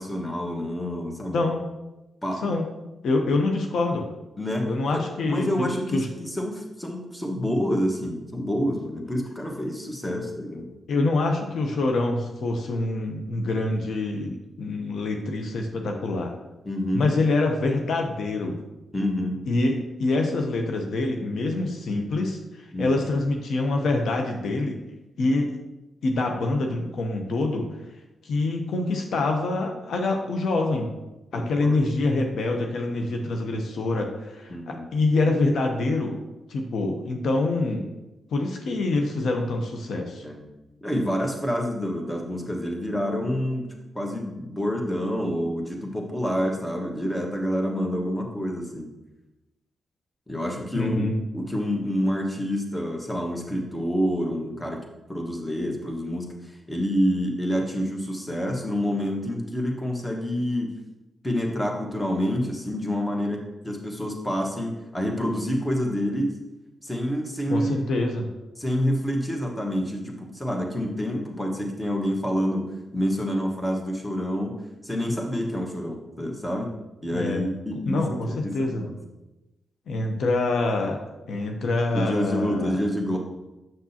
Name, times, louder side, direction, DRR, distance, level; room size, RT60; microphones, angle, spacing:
voice 1, 0.0-1.5 2.2-2.5 4.4-10.7 16.6-17.1 18.9-19.4 22.7-23.0 31.3-31.8 34.5-34.8 40.2-40.4 40.8-48.9 50.3-51.1 51.3-60.7 61.2-66.4 66.8-68.0 68.6-74.6 74.8-76.7 77.0-78.9 81.9-83.2, equal, 15° left, 1 dB, 1.4 m, -28 dB
voice 2, 3.0-4.1 4.6-6.1 10.9-16.3 16.9-18.6 19.5-22.4 22.8-24.8 25.2-25.5 26.0-27.6 28.2-30.9 31.3-36.2 36.5-37.8 38.3-40.2 50.8-51.1 67.5-68.3 77.1-77.4 77.9-78.9 79.9-81.0 81.3-82.8, left 2 dB, 75° left, 3 dB, 0.7 m, -25 dB
6.8 x 6.1 x 2.8 m, 1.0 s
cardioid pair, 70°, 0 cm